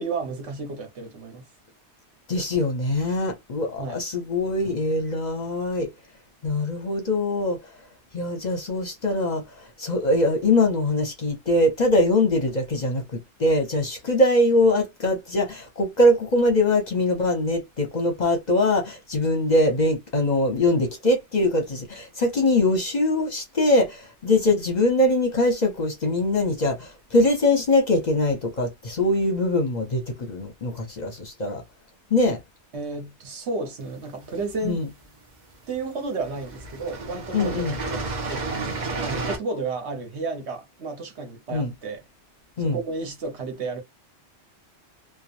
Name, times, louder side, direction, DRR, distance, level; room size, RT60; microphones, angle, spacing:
voice 1, 0.0-1.5 3.8-4.0 32.7-34.8 35.7-38.0 38.3-38.4 39.0-42.0 42.6-43.8, right 3 dB, 70° right, 1.2 m, -32 dB
voice 2, 2.3-5.9 6.4-7.7 8.1-31.6 32.1-32.4 34.6-34.9 37.3-37.8 41.5-41.7 42.6-42.8, left 1 dB, 45° left, 0.7 m, -22 dB
sound 1, 34.0-34.9 35.7-35.9 36.2-39.4, right 3 dB, 45° right, 0.8 m, -31 dB
3.0 x 2.2 x 2.4 m
omnidirectional pair, 1.2 m